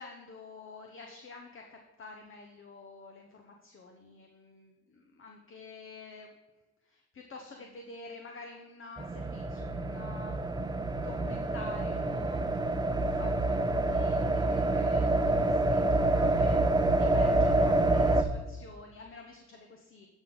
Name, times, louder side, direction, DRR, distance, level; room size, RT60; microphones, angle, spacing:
voice 1, 0.0-6.3 6.9-10.7 11.0-12.7 13.0-20.1, left 3 dB, 45° left, 2 dB, 1.2 m, -49 dB
sound 1, 9.0-18.2, right 2 dB, 15° right, 0.7 m, -27 dB
11.0 x 6.2 x 3.9 m, 1.2 s
cardioid pair, 90°, 30 cm